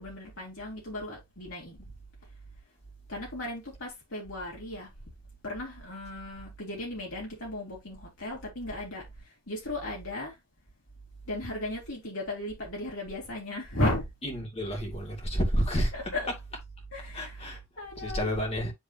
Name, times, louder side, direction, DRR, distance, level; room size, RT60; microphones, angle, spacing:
voice 1, 0.0-1.8 3.1-4.9 5.4-10.4 11.3-14.1 15.4-15.5 15.9-16.3 16.9-18.7, left 1 dB, 65° left, 3.1 m, -36 dB
voice 2, 14.4-15.9 17.1-17.6 18.0-18.7, equal, 30° left, 2.3 m, -29 dB
10.0 x 3.5 x 2.8 m
head